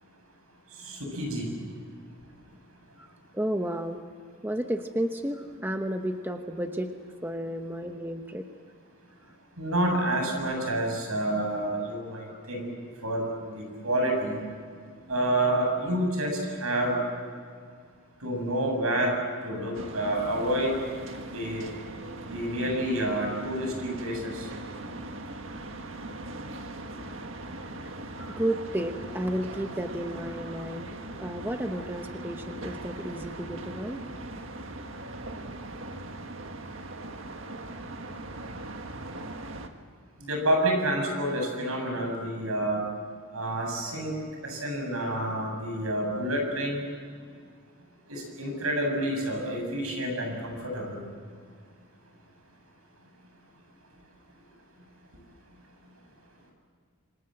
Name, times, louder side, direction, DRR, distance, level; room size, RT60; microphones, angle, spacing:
voice 1, 0.8-1.5 9.6-12.7 13.0-14.4 15.1-17.0 18.2-19.1 19.4-20.8 21.3-21.6 22.3-24.5 40.2-42.8 43.3-44.1 44.4-46.8 48.1-51.0, right 1 dB, 80° right, 2 dB, 7.5 m, -28 dB
voice 2, 3.3-4.0 4.4-6.9 7.2-8.4 27.7-27.8 28.2-30.9 31.2-34.0, right 1 dB, 10° right, 5 dB, 1.0 m, -32 dB
sound 1, 19.7-39.7, right 2 dB, 65° right, 1.7 m, -40 dB
27.0 x 25.5 x 7.7 m, 2.1 s
head